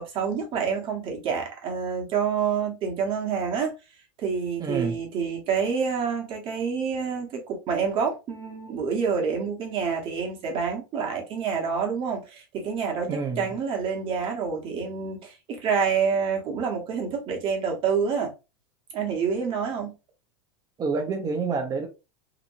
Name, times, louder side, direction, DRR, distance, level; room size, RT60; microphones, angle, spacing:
voice 1, 0.0-3.7 4.2-13.1 13.4-18.3 18.9-19.9, right 6 dB, 45° right, 1.2 m, -27 dB
voice 2, 4.6-5.0 13.1-13.6 20.8-21.9, right 4 dB, 30° right, 0.8 m, -28 dB
2.9 x 2.6 x 2.5 m
hypercardioid pair, 105°, 13 cm